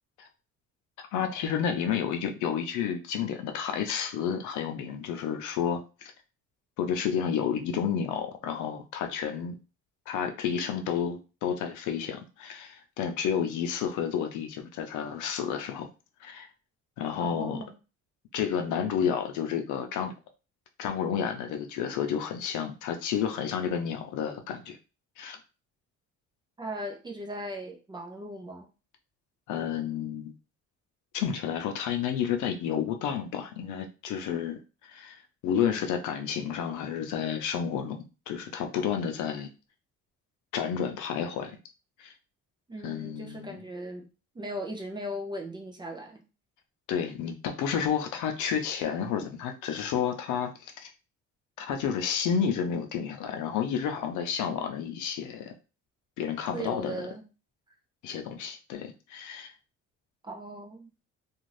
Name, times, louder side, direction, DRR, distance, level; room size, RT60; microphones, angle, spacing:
voice 1, 1.1-6.1 6.8-9.5 10.1-15.9 16.2-16.5 17.0-17.6 18.3-20.1 20.8-24.8 25.2-25.4 29.5-30.3 31.1-35.2 35.4-38.0 38.3-39.5 40.5-41.6 42.0-42.1 42.8-43.6 46.9-50.9 51.6-55.5 56.2-57.1 58.0-59.5, left 8 dB, 85° left, 5 dB, 0.6 m, -31 dB
voice 2, 17.2-17.7 26.6-28.7 42.7-44.1 44.3-46.2 56.5-57.2 60.2-60.9, right 1 dB, 15° right, 2 dB, 0.4 m, -38 dB
2.6 x 2.4 x 3.1 m, 0.32 s
cardioid pair, 160°, 29 cm